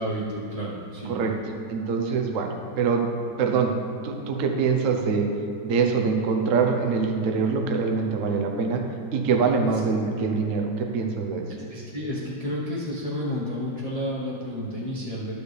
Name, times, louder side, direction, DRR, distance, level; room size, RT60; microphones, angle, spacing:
voice 1, 0.0-1.1 9.7-9.8 11.6-15.3, equal, 30° left, -6 dB, 0.8 m, -31 dB
voice 2, 1.7-3.1 3.4-3.7 4.0-5.3 5.6-8.9 9.1-11.4, right 5 dB, 60° right, 3 dB, 0.8 m, -24 dB
12.0 x 6.7 x 3.3 m, 2.8 s
omnidirectional pair, 2.2 m